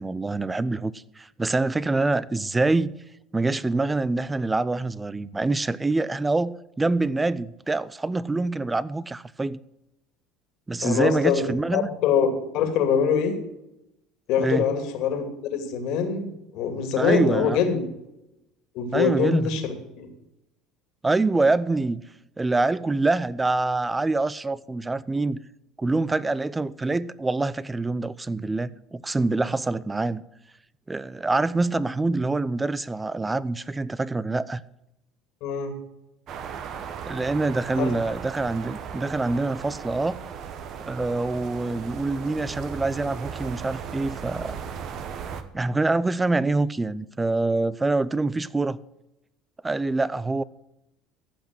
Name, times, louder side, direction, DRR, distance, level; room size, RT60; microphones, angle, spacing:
voice 1, 0.0-3.0 3.3-9.6 10.7-11.9 14.4-14.7 17.0-17.6 18.9-19.5 21.0-22.0 22.4-25.4 25.8-30.2 30.9-34.6 37.1-40.2 40.9-44.5 45.5-48.8 49.6-50.4, right 3 dB, 15° right, 0.6 m, -25 dB
voice 2, 10.8-12.3 12.5-13.4 14.3-17.8 18.7-20.1 35.4-35.7 37.7-37.9, left 7 dB, 65° left, 2.5 m, -24 dB
sound 1, 36.3-45.4, right 7 dB, 55° right, 1.3 m, -36 dB
15.0 x 5.8 x 7.7 m
hypercardioid pair, 75°, 0 cm